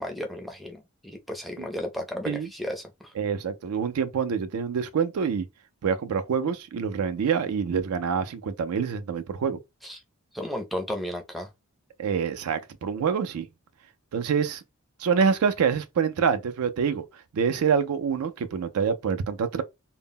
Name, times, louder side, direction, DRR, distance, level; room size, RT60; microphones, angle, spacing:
voice 1, 0.0-3.1 9.8-10.0 10.3-11.5, left 1 dB, ahead, 0.4 m, -34 dB
voice 2, 3.2-5.5 5.8-9.6 12.0-13.5 14.1-14.6 15.0-17.0 17.3-19.6, right 6 dB, 75° right, 0.4 m, -26 dB
2.1 x 2.0 x 3.5 m
head